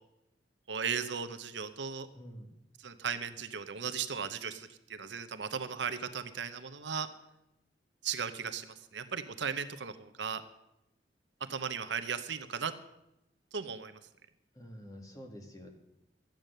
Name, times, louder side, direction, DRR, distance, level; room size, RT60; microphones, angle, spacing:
voice 1, 0.7-2.1 2.8-7.1 8.0-10.4 11.4-12.7 13.5-14.0, right 6 dB, 75° right, 10 dB, 0.9 m, -36 dB
voice 2, 2.1-2.5 14.6-15.7, equal, 20° left, 3 dB, 1.8 m, -48 dB
13.0 x 9.1 x 6.6 m, 0.87 s
head